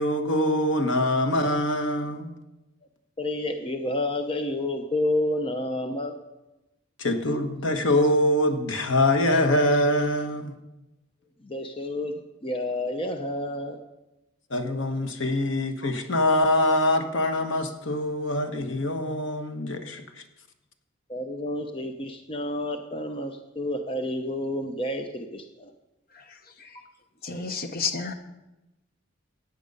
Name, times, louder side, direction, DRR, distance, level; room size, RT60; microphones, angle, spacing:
voice 1, 0.0-2.3 7.0-10.5 14.5-20.0, left 1 dB, 70° left, 6 dB, 1.3 m, -24 dB
voice 2, 3.2-6.1 11.4-13.8 21.1-25.7, left 1 dB, 25° left, 5 dB, 0.8 m, -30 dB
voice 3, 27.2-28.1, left 5 dB, 50° left, 7 dB, 1.1 m, -30 dB
15.5 x 9.3 x 5.4 m, 0.98 s
head